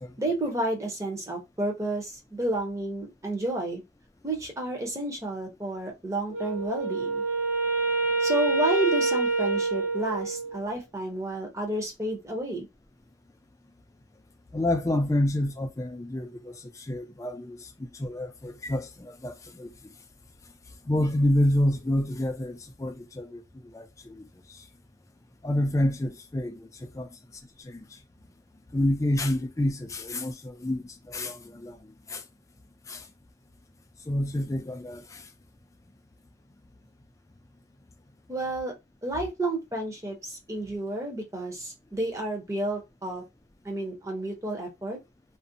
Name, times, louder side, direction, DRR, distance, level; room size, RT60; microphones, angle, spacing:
voice 1, 0.2-3.8 4.2-7.2 8.2-12.7 38.3-38.7 39.0-43.2 43.6-45.0, right 1 dB, 15° right, 0.6 m, -31 dB
Wind instrument woodwind instrument, 6.3-10.7, right 3 dB, 55° right, 0.9 m, -27 dB
voice 2, 14.5-16.6 16.9-19.7 20.9-23.4 23.7-24.2 25.4-27.1 27.6-27.8 28.7-31.8 32.1-32.2 32.9-33.0 34.1-35.2, left 1 dB, 15° left, 0.3 m, -28 dB
2.5 x 2.0 x 2.5 m
head